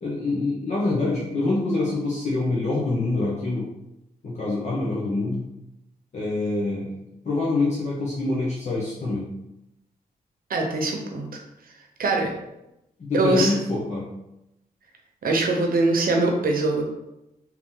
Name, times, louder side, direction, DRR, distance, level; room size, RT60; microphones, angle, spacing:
voice 1, 0.0-3.7 4.2-5.4 6.1-6.9 7.2-9.3 13.0-14.1, left 2 dB, 50° left, -5 dB, 1.0 m, -25 dB
voice 2, 10.5-11.3 12.0-12.3 13.1-13.5 15.2-16.8, right 2 dB, 65° right, 2 dB, 0.8 m, -22 dB
3.8 x 3.0 x 3.8 m, 0.89 s
cardioid pair, 85°, 16 cm